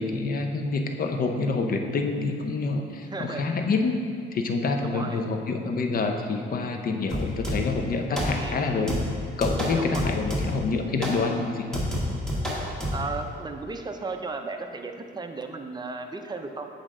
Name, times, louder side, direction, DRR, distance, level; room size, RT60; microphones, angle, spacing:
voice 1, 0.0-4.0 4.3-9.1 9.4-11.9, left 3 dB, 45° left, 4 dB, 0.7 m, -27 dB
voice 2, 3.0-3.5 4.8-5.2 8.4-8.6 9.8-10.2 12.9-16.7, right 3 dB, 20° right, 5 dB, 0.6 m, -35 dB
sound 1, 7.1-7.8 8.2-8.6 8.9-10.7 11.0-11.2 11.7-13.1, equal, 5° left, 1.6 m, -29 dB
7.3 x 5.0 x 3.7 m, 2.3 s
cardioid pair, 90°, 20 cm